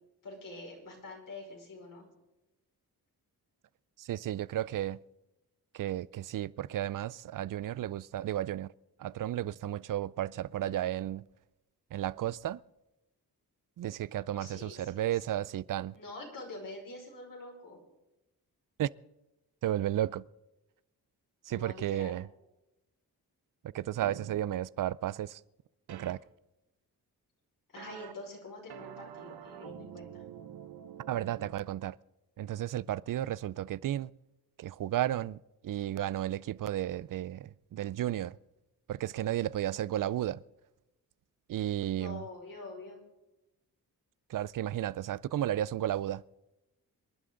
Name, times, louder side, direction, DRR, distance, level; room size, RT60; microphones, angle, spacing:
voice 1, 0.2-2.1 14.3-15.2 15.9-17.8 21.5-22.2 27.7-30.3 41.9-43.0, left 2 dB, 60° left, 5.4 m, -46 dB
voice 2, 4.0-5.0 5.7-8.7 9.0-11.3 11.9-12.6 13.8-15.9 18.8-18.9 19.6-20.2 21.5-22.2 23.6-25.4 25.9-26.2 31.1-32.0 32.4-34.1 34.6-38.4 38.9-40.4 41.5-42.2 44.3-46.2, right 12 dB, 60° right, 0.4 m, -33 dB
sound 1, 24.0-24.4 25.9-26.1 27.8-28.1 28.7-31.5, right 9 dB, 90° right, 1.0 m, -46 dB
26.0 x 11.5 x 3.8 m
wide cardioid pair, 125°, 37 cm